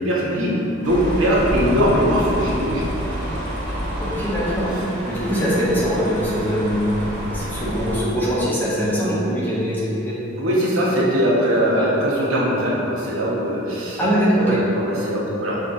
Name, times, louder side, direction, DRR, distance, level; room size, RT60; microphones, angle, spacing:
voice 1, 0.0-2.9 10.4-14.0 14.4-15.6, equal, 80° right, -5 dB, 0.9 m, -21 dB
sound 1, 0.8-8.0, equal, 40° right, 1.1 m, -28 dB
voice 2, 4.0-6.9 7.3-10.2 11.7-11.9 14.0-14.6, equal, 10° left, -9 dB, 0.7 m, -22 dB
5.4 x 2.9 x 2.5 m, 2.9 s
head